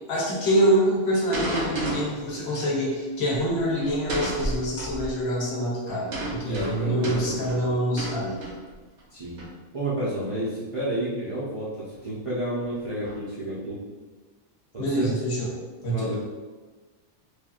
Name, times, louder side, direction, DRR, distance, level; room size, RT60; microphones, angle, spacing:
voice 1, 0.0-8.4 14.8-15.5 15.8-16.2, right 1 dB, 65° left, -4 dB, 0.9 m, -25 dB
sound 1, 1.3-2.3 3.8-4.6 5.9-9.0 9.4-9.7 10.9-11.0 11.9-12.0 12.6-13.1, right 1 dB, 80° right, 1.0 m, -33 dB
sound 2, 1.7-2.1 2.4-2.8 3.3-5.5 6.7-7.3 7.8-7.9 8.6-8.8 9.2-9.3, right 1 dB, 35° left, 0.8 m, -37 dB
voice 2, 6.5-7.5 9.1-9.4 9.7-11.7 12.0-13.9 14.7-15.1 15.8-16.2, right 1 dB, 35° right, -10 dB, 0.6 m, -30 dB
3.1 x 2.4 x 2.4 m, 1.3 s
omnidirectional pair, 1.2 m